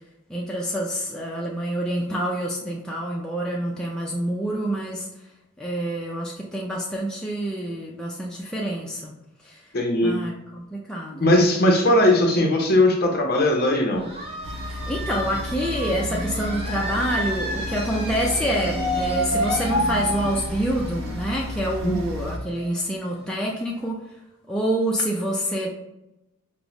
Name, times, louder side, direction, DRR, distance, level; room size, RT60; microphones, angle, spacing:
voice 1, 0.3-5.1 5.6-9.1 9.4-9.6 10.0-11.3 14.7-24.0 24.5-25.7, equal, 5° left, -4 dB, 0.3 m, -27 dB
voice 2, 9.7-10.1 11.2-14.0 21.8-21.9, left 1 dB, 45° left, 1 dB, 0.7 m, -19 dB
sound 1, 14.0-23.4, equal, 25° right, 0.7 m, -30 dB
sound 2, 14.4-22.4, left 1 dB, 65° right, 0.5 m, -33 dB
5.2 x 2.0 x 3.0 m, 0.91 s
head